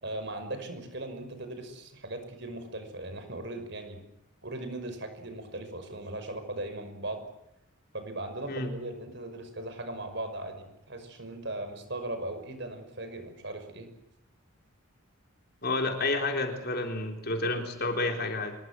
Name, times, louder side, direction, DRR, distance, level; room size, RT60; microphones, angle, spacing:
voice 1, 0.0-4.0 4.4-7.2 7.9-13.9, right 1 dB, 55° right, 8 dB, 5.8 m, -38 dB
voice 2, 15.6-18.6, left 2 dB, 45° left, 4 dB, 3.9 m, -30 dB
25.5 x 22.5 x 7.7 m, 0.82 s
head